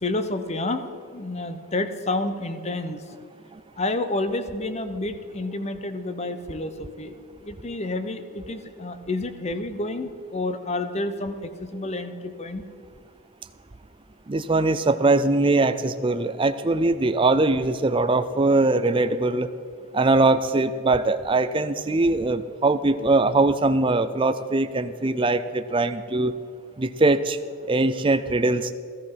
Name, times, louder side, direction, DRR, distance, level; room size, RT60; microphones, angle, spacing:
voice 1, 0.0-3.0 3.8-7.1 7.4-12.6, left 2 dB, 30° left, 10 dB, 0.9 m, -29 dB
voice 2, 14.3-19.5 19.9-26.3 26.8-27.4 27.7-28.7, right 2 dB, 25° right, 10 dB, 0.5 m, -21 dB
15.5 x 14.0 x 5.8 m, 2.3 s
head